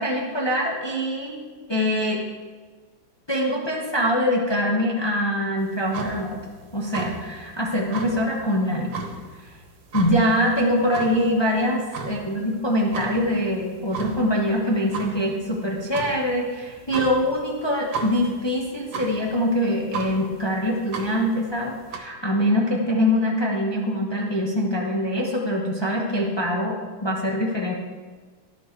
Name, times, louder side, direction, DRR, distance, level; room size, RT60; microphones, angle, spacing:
voice 1, 0.0-1.4 1.7-2.2 3.3-6.4 6.7-9.0 9.9-27.7, equal, 35° left, -2 dB, 0.4 m, -24 dB
sound 1, 5.6-22.0, right 4 dB, 70° right, 1.7 m, -36 dB
11.0 x 6.1 x 4.5 m, 1.5 s
omnidirectional pair, 2.2 m